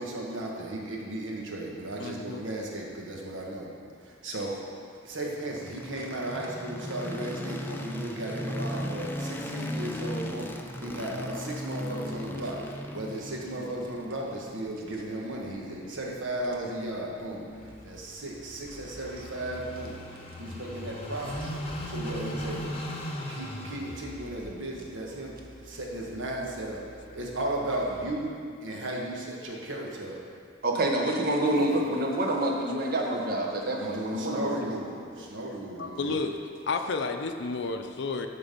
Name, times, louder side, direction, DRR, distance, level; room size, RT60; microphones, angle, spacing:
voice 1, 0.0-3.7 4.0-4.5 5.0-17.4 17.8-20.0 20.4-21.4 21.9-22.8 23.3-25.3 25.6-26.8 27.1-28.3 28.6-30.2 31.5-31.8 33.8-36.2, right 1 dB, 80° right, -2 dB, 1.3 m, -35 dB
voice 2, 2.0-2.4 26.1-26.2 31.6-33.3 34.6-34.7 35.0-35.1 35.8-36.4 36.6-38.3, left 3 dB, 65° left, 6 dB, 0.5 m, -34 dB
sound 1, 5.3-19.4, left 1 dB, 10° left, 0.4 m, -38 dB
Car passing by / Idling, 17.5-28.2, equal, 30° left, 0.9 m, -40 dB
voice 3, 30.6-34.5, right 1 dB, 50° right, 0 dB, 1.1 m, -27 dB
11.0 x 4.0 x 5.3 m, 2.3 s
head